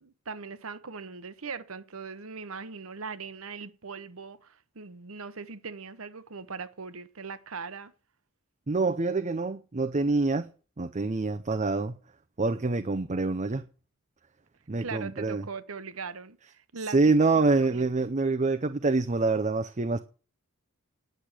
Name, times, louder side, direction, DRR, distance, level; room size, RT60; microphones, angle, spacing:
voice 1, 0.0-7.9 14.8-18.1, right 5 dB, 70° right, 1.0 m, -40 dB
voice 2, 8.7-10.5 10.8-12.0 12.4-13.6 14.7-15.4 16.9-20.0, right 3 dB, 35° right, 0.6 m, -26 dB
10.0 x 6.5 x 9.0 m
head